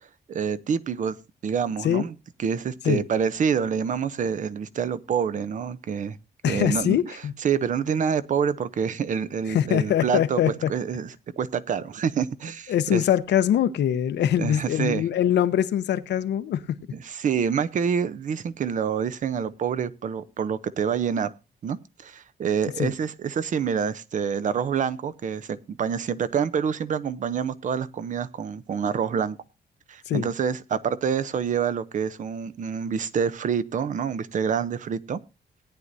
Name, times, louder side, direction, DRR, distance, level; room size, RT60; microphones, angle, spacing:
voice 1, 0.3-1.2 1.4-6.2 6.5-7.0 7.4-10.4 10.7-13.0 14.4-15.0 16.9-21.3 21.6-29.4 29.9-35.2, right 7 dB, 45° right, 0.6 m, -27 dB
voice 2, 6.4-7.3 9.5-10.7 12.7-16.8 22.8-22.9 30.1-30.3, left 10 dB, 90° left, 0.8 m, -23 dB
18.0 x 9.6 x 2.6 m
wide cardioid pair, 165°, 17 cm